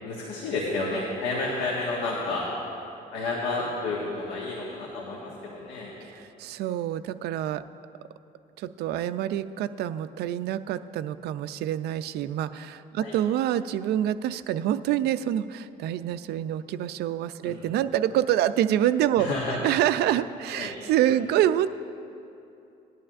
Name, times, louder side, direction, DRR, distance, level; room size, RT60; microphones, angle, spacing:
voice 1, 0.0-2.5 3.1-5.9 13.0-13.1 17.4-17.6 19.2-19.7 20.5-20.7 21.1-21.2, left 3 dB, 90° left, -4 dB, 1.6 m, -31 dB
voice 2, 6.0-7.6 8.6-19.3 19.6-21.7, right 11 dB, 75° right, 13 dB, 0.4 m, -26 dB
18.5 x 11.0 x 2.5 m, 2.7 s
cardioid pair, 110°, 17 cm